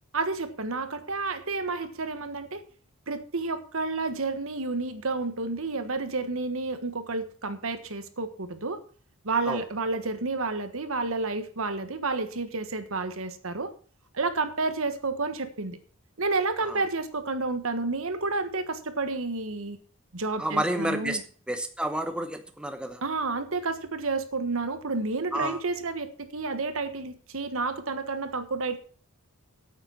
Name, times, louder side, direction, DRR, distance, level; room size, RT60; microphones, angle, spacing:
voice 1, 0.1-2.6 3.1-8.8 9.2-13.7 14.1-15.8 16.2-19.8 20.1-21.2 23.0-28.8, right 3 dB, 65° right, 10 dB, 1.4 m, -30 dB
voice 2, 20.4-21.2 21.5-23.0 25.3-25.6, right 1 dB, 5° right, 7 dB, 0.9 m, -30 dB
9.0 x 8.8 x 7.2 m, 0.43 s
head